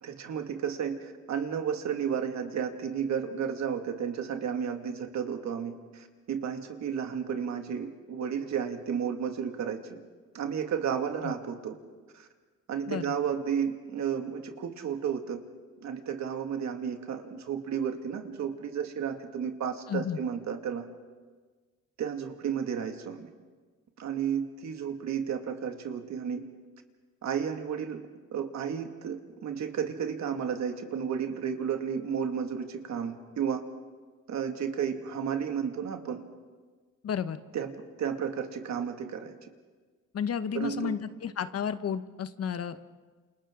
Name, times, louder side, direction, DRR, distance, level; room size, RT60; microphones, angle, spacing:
voice 1, 0.0-10.0 10.3-11.8 12.1-12.3 12.7-15.4 15.8-20.8 22.0-23.3 24.0-26.5 27.2-33.6 34.3-36.2 37.5-37.7 38.0-39.5 40.5-40.9, right 7 dB, 65° right, 5 dB, 2.2 m, -32 dB
voice 2, 19.9-20.2 37.0-37.4 40.1-42.8, left 8 dB, 55° left, 11 dB, 1.1 m, -32 dB
28.5 x 28.5 x 3.8 m, 1.4 s
cardioid pair, 90°, 30 cm